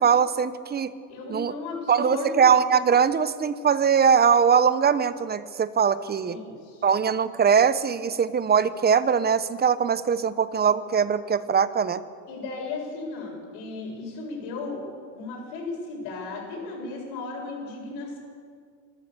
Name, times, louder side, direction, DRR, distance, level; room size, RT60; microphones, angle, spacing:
voice 1, 0.0-0.9 1.3-1.5 1.9-6.4 6.8-12.0, right 7 dB, 20° right, 14 dB, 0.9 m, -21 dB
voice 2, 1.1-2.4 6.2-6.9 12.3-14.8 15.1-18.2, left 3 dB, 65° left, 0 dB, 7.8 m, -35 dB
26.5 x 13.5 x 7.1 m, 2.1 s
supercardioid pair, 110°, 44 cm